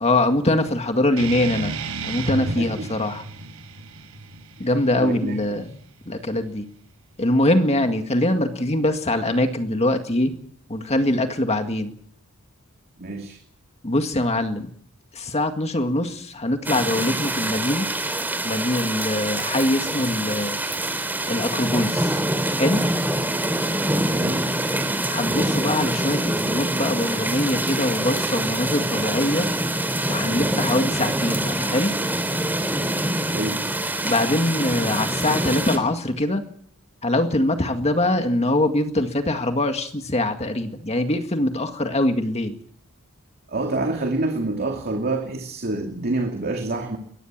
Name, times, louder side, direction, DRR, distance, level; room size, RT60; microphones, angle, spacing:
voice 1, 0.0-1.7 2.0-3.2 4.6-5.8 6.1-6.7 7.2-10.3 10.7-11.9 13.8-14.7 15.1-17.9 18.4-20.6 21.3-22.2 22.6-22.8 25.1-29.5 30.1-31.9 34.0-36.4 37.0-42.6, left 1 dB, 30° left, 6 dB, 2.0 m, -23 dB
sound 1, 1.2-6.2, right 3 dB, 70° right, 5.7 m, -33 dB
voice 2, 2.6-2.9 4.6-4.7 5.0-5.4 13.0-13.4 24.0-24.4 33.3-33.6 43.5-47.0, right 2 dB, 45° right, 3 dB, 2.6 m, -27 dB
sound 2, 16.6-35.8, right 1 dB, 10° right, 3.6 m, -25 dB
23.0 x 19.5 x 7.5 m, 0.62 s
head